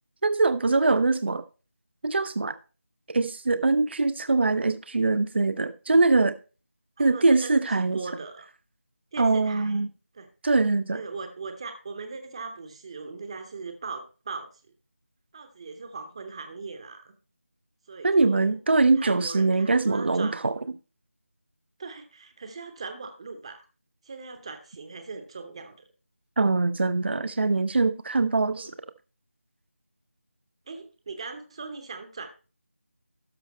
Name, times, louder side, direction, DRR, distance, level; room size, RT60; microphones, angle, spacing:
voice 1, 0.2-1.4 2.0-2.6 3.1-6.3 7.0-8.0 9.2-9.9 10.4-11.0 18.0-20.5 26.4-28.7, right 3 dB, 50° right, 0.5 m, -23 dB
voice 2, 7.0-8.5 9.1-9.8 10.1-10.3 10.9-14.5 15.3-17.1 17.9-18.6 19.0-20.4 21.8-23.6 24.0-25.8 28.5-28.7 30.7-32.3, right 4 dB, 25° right, 0.8 m, -39 dB
12.5 x 5.4 x 4.1 m
figure-of-eight pair, 165°, 7 cm